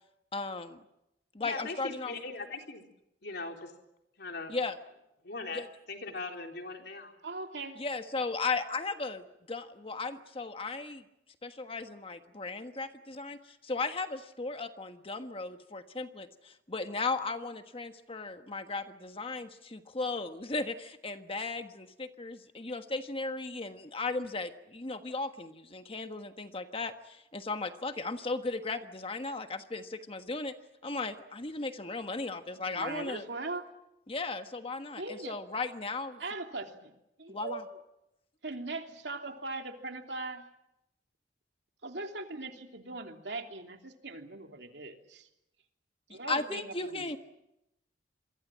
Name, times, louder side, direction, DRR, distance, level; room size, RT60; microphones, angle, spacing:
voice 1, 0.3-0.8 1.3-2.1 4.5-4.8 5.5-5.7 7.7-11.0 11.4-30.5 30.8-33.3 34.1-36.2 37.3-37.6 46.1-47.2, left 3 dB, 30° left, 8 dB, 1.4 m, -36 dB
voice 2, 1.4-2.9 3.2-3.7 4.2-4.5 5.2-5.6 5.9-7.1, left 3 dB, 65° left, 3 dB, 3.7 m, -40 dB
voice 3, 7.2-7.8 32.6-33.6 35.0-35.3 36.2-36.9 37.2-37.7 38.4-40.4 41.8-45.3 46.1-47.2, right 3 dB, 70° right, 4 dB, 3.0 m, -40 dB
27.0 x 23.0 x 7.6 m, 0.86 s
head